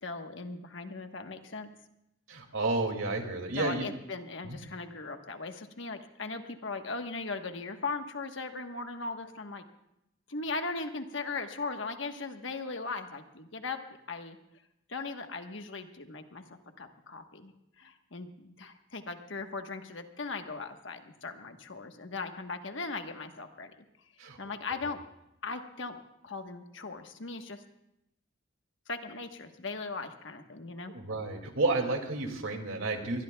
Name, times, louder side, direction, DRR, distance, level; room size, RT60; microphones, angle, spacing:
voice 1, 0.0-1.7 3.5-9.6 10.3-14.4 14.9-23.7 24.4-25.0 25.4-27.6 28.9-30.9, left 3 dB, 65° left, 6 dB, 1.2 m, -38 dB
voice 2, 2.3-3.9 4.5-4.6 24.2-24.4 30.9-33.2, right 2 dB, 90° right, 4 dB, 2.3 m, -31 dB
23.5 x 20.5 x 2.3 m, 0.85 s
head